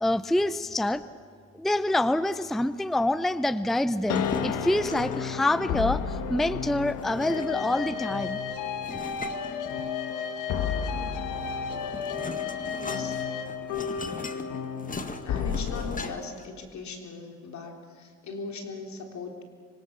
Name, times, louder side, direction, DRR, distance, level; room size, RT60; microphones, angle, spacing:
voice 1, 0.0-1.0 1.5-8.4, left 1 dB, ahead, 14 dB, 0.6 m, -26 dB
sound 1, 4.0-5.4 6.8-7.8 8.8-10.2 11.4-16.4, left 3 dB, 25° left, 1.7 m, -39 dB
sound 2, 4.1-16.0, left 7 dB, 85° left, 1.5 m, -32 dB
voice 2, 12.7-13.2 15.2-19.4, left 3 dB, 65° left, 3 dB, 3.7 m, -39 dB
25.5 x 24.0 x 6.8 m, 2.1 s
cardioid pair, 90°, 30 cm